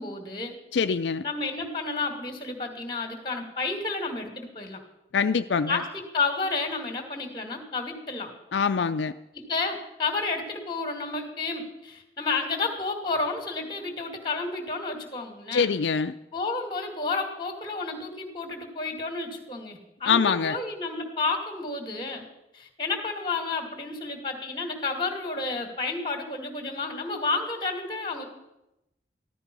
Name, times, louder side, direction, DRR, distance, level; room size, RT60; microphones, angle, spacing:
voice 1, 0.0-0.5 1.2-4.8 5.6-8.3 9.3-15.7 16.3-22.2 22.5-28.3, left 3 dB, 25° left, 5 dB, 2.4 m, -31 dB
voice 2, 0.7-1.2 5.1-5.8 8.5-9.1 15.5-16.1 20.1-20.6, left 6 dB, 80° left, 9 dB, 0.4 m, -24 dB
15.0 x 12.5 x 5.4 m, 0.89 s
head